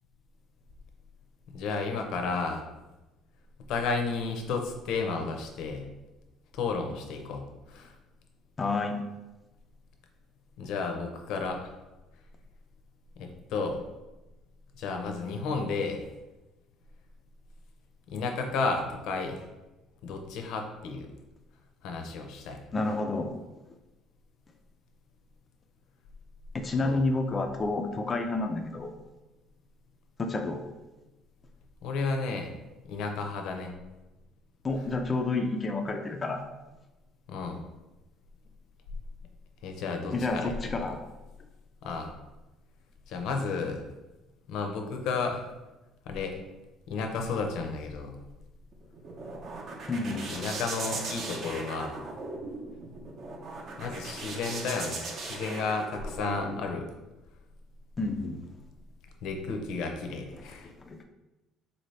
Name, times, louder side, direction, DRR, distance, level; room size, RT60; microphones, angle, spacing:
voice 1, 1.5-2.6 3.7-5.9 6.5-7.9 10.6-11.7 13.2-13.8 14.8-16.0 18.1-19.4 20.0-21.1 21.8-22.6 26.8-27.0 31.8-32.5 32.9-33.7 37.3-37.6 39.6-40.9 41.8-42.1 43.1-43.8 44.5-45.4 46.1-46.4 46.9-48.2 50.1-52.0 53.8-56.8 59.2-60.7, left 4 dB, 70° left, 4 dB, 0.6 m, -32 dB
voice 2, 8.6-9.0 22.7-23.3 26.5-28.9 30.2-30.7 34.6-36.4 40.1-41.0 49.9-50.3 58.0-58.4 60.3-61.0, left 3 dB, 25° left, 4 dB, 0.3 m, -30 dB
sound 1, 48.7-56.6, right 3 dB, 45° right, 0.6 m, -38 dB
4.0 x 2.7 x 3.2 m, 1.1 s
cardioid pair, 145°, 0 cm